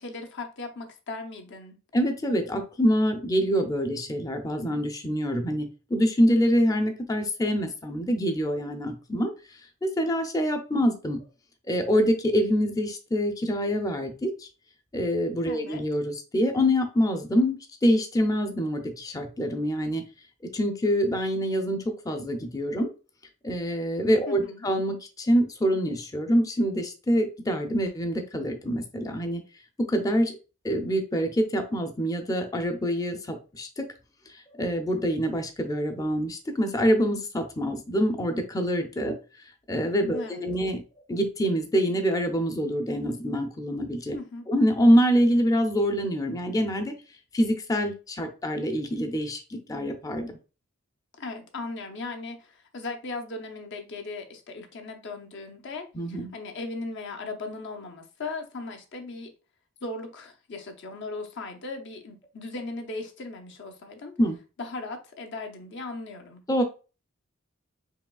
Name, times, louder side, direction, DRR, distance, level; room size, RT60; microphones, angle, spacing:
voice 1, 0.0-1.8 15.4-15.8 24.3-24.7 40.1-40.4 44.1-44.5 51.2-59.3 59.8-64.1 64.6-66.4, left 3 dB, 60° left, 0.7 m, -38 dB
voice 2, 1.9-9.3 9.8-11.2 11.7-14.5 14.9-20.0 20.5-22.9 23.4-29.4 29.8-30.4 30.6-33.9 34.5-39.1 39.7-40.8 41.1-44.1 44.5-46.9 47.3-50.3 55.9-56.3 64.2-64.4 66.5-66.6, equal, 15° left, 0.5 m, -25 dB
4.8 x 3.2 x 2.3 m
head